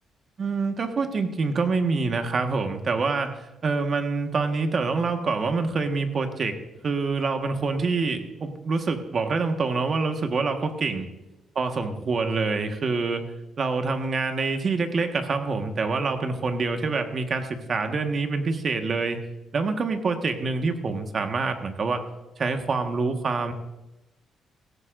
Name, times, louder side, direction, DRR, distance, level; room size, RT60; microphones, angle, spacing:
voice 1, 0.4-6.6 6.8-11.1 11.5-13.2 13.6-19.2 19.5-22.0 22.4-23.5, right 4 dB, 45° right, 6 dB, 1.5 m, -26 dB
16.5 x 14.5 x 2.6 m, 0.99 s
cardioid pair, 90°, 0 cm